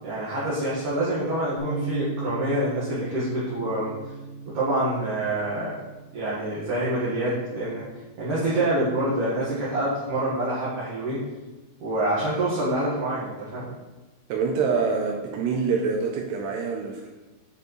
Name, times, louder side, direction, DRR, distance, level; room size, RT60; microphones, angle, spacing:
voice 1, 0.0-3.9 4.5-5.8 6.1-7.8 8.2-11.2 11.8-13.7, right 1 dB, 60° right, -9 dB, 2.5 m, -26 dB
Bass guitar, 1.6-7.8, right 2 dB, 75° left, 2.5 m, -37 dB
voice 2, 14.3-17.1, right 5 dB, 80° right, 1 dB, 2.5 m, -25 dB
9.6 x 4.7 x 3.1 m, 1.2 s
omnidirectional pair, 5.1 m